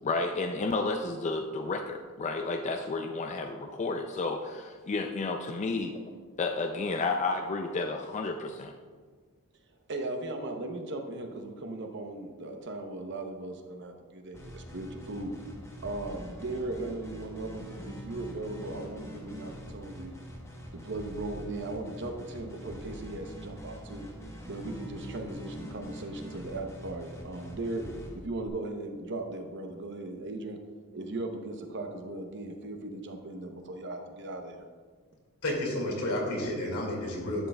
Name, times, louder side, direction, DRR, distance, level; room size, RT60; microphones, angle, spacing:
voice 1, 0.0-6.0 6.4-8.7, left 3 dB, 30° left, 4 dB, 0.4 m, -31 dB
voice 2, 9.9-15.3 15.8-20.1 20.7-24.1 24.5-27.8 28.1-30.6 30.9-34.7, right 2 dB, 55° right, 5 dB, 0.9 m, -38 dB
sound 1, 14.3-28.5, equal, 15° left, 1.1 m, -44 dB
voice 3, 35.4-37.5, left 1 dB, 85° left, -1 dB, 2.3 m, -31 dB
11.0 x 7.8 x 2.3 m, 1.5 s
head